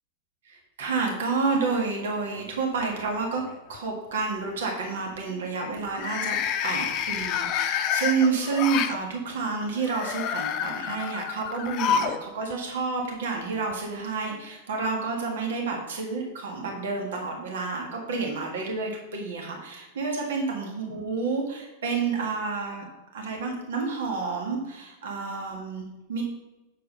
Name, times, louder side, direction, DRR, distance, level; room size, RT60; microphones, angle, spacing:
voice 1, 0.4-3.4 3.7-22.8 23.1-26.2, right 4 dB, 75° right, 0 dB, 1.7 m, -29 dB
sound 1, 2.4-3.0 3.4-3.8 5.9-9.0 9.8-12.2 12.5-12.6 13.7-13.8, left 8 dB, 45° left, 0.6 m, -29 dB
7.3 x 4.7 x 5.4 m, 1.1 s
hypercardioid pair, 100°, 0 cm